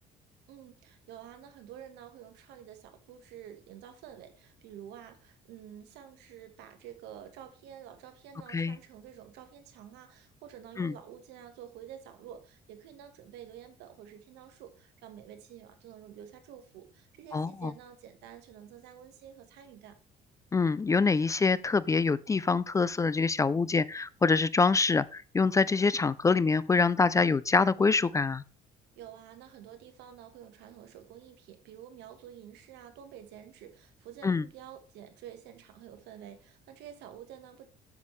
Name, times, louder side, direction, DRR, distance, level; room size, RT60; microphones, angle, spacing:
voice 1, 0.5-20.0 28.9-37.7, right 10 dB, 90° right, 1.4 m, -49 dB
voice 2, 17.3-17.7 20.5-28.4 34.2-34.4, left 4 dB, 20° left, 0.3 m, -25 dB
8.2 x 7.3 x 3.2 m
cardioid pair, 110°, 17 cm